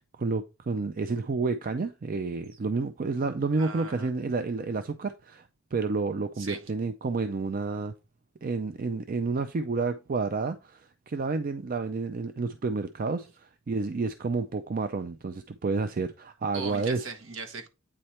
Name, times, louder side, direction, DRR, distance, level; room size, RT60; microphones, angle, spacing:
voice 1, 0.2-7.9 8.4-17.0, right 4 dB, 40° right, 0.4 m, -30 dB
voice 2, 3.6-4.1 6.4-6.7 16.5-17.7, right 4 dB, 65° right, 1.2 m, -39 dB
8.7 x 3.2 x 4.3 m
head